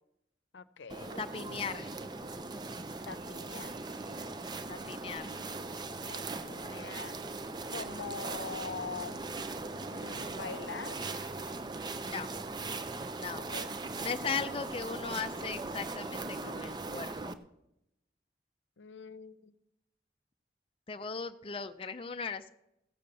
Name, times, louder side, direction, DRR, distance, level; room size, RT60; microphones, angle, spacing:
voice 1, 0.5-1.2 3.1-3.8 6.1-7.2 7.7-9.2 9.9-11.0 13.5-13.8 18.8-19.5, left 4 dB, 90° left, 13 dB, 0.7 m, -43 dB
sound 1, 0.9-17.3, right 3 dB, 25° right, 0.5 m, -39 dB
voice 2, 1.2-1.9 4.7-5.3 12.0-12.3 13.2-13.4 14.0-17.3 20.9-22.5, left 5 dB, 30° left, 9 dB, 0.4 m, -38 dB
16.0 x 6.8 x 6.7 m, 0.85 s
head